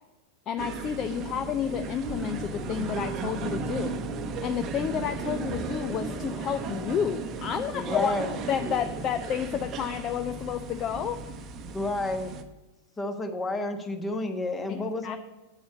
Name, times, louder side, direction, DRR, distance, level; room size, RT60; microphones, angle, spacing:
voice 1, 0.5-4.0 4.4-8.1 8.5-11.2 14.7-15.2, left 9 dB, 30° left, 10 dB, 0.5 m, -30 dB
sound 1, 0.6-12.4, right 4 dB, 30° right, 0.8 m, -35 dB
voice 2, 7.7-8.3 11.7-12.3 13.0-15.2, left 2 dB, 15° left, 6 dB, 1.2 m, -30 dB
8.3 x 7.0 x 7.7 m, 1.0 s
figure-of-eight pair, 90°, 0 cm